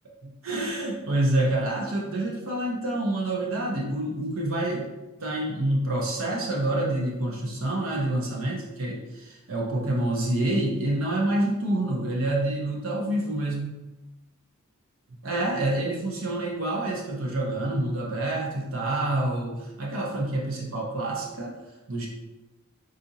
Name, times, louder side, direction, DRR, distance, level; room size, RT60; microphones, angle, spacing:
voice 1, 0.2-4.9 5.2-13.8 15.2-21.5 21.9-22.1, right 1 dB, 75° right, -2 dB, 0.7 m, -27 dB
4.0 x 2.5 x 2.7 m, 1.0 s
head